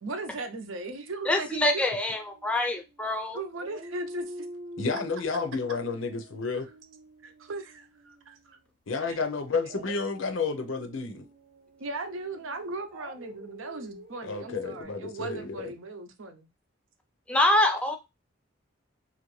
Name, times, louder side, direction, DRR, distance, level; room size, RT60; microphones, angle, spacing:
voice 1, 0.0-1.8 3.3-4.5 7.2-8.6 9.0-9.2 11.8-16.5, right 3 dB, 90° right, 0.6 m, -38 dB
voice 2, 1.3-3.4 17.3-18.0, left 1 dB, 5° left, 0.4 m, -25 dB
Dog, 1.6-3.1 3.5-8.6 9.6-14.8, right 1 dB, 45° right, 0.7 m, -47 dB
voice 3, 4.8-6.7 8.9-11.3 14.2-15.7, left 4 dB, 85° left, 0.6 m, -31 dB
2.9 x 2.5 x 3.1 m
head